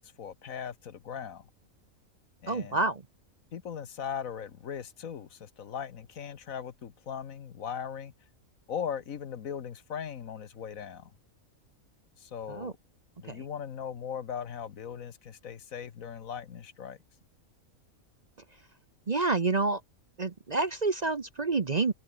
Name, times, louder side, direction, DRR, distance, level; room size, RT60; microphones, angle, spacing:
voice 1, 0.0-1.5 2.4-2.8 3.5-8.1 8.7-11.1 12.2-12.8 13.2-17.0, left 8 dB, 75° left, 1.6 m, -39 dB
voice 2, 2.5-3.0 12.5-12.7 13.3-13.4 19.1-19.8 20.2-21.9, right 3 dB, 35° right, 0.8 m, -28 dB
omnidirectional pair, 1.5 m